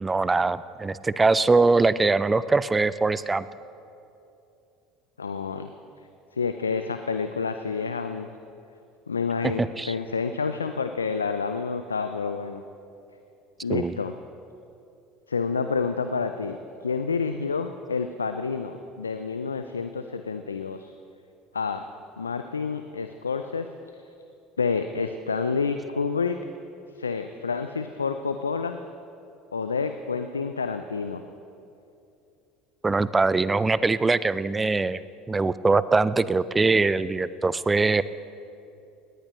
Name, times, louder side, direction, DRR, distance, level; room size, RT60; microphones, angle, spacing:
voice 1, 0.0-3.5 9.6-9.9 13.7-14.0 32.8-35.0 35.3-38.0, right 3 dB, 20° right, 17 dB, 0.5 m, -22 dB
voice 2, 5.2-5.7 6.3-8.3 9.1-12.6 13.6-14.1 15.3-20.9 21.5-21.8 22.2-24.0 24.6-26.4 27.0-28.8 29.5-31.2, left 5 dB, 90° left, 8 dB, 0.4 m, -29 dB
19.5 x 18.5 x 3.1 m, 2.7 s
figure-of-eight pair, 70°, 0 cm